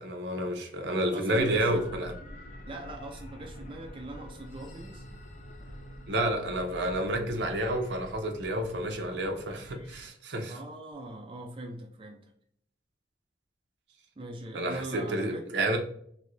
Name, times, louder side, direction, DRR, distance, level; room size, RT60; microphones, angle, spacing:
voice 1, 0.0-2.1 6.1-10.6 14.5-15.8, right 1 dB, 75° right, 3 dB, 0.7 m, -30 dB
voice 2, 1.1-1.9 2.7-5.0 10.5-12.3 14.2-15.5, right 1 dB, 30° right, 1 dB, 0.4 m, -40 dB
sound 1, 1.3-10.1, equal, 40° left, 0.6 m, -47 dB
3.0 x 2.5 x 3.0 m, 0.67 s
head